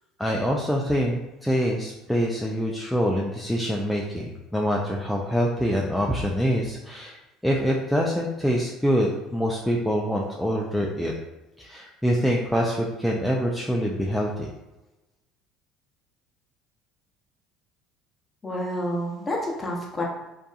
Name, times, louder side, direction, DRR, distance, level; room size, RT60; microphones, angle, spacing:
voice 1, 0.2-11.1 11.6-14.5, equal, ahead, -2 dB, 0.3 m, -25 dB
voice 2, 18.4-20.0, equal, 20° left, -2 dB, 0.7 m, -29 dB
2.6 x 2.4 x 2.3 m, 1.0 s
supercardioid pair, 90°, 0 cm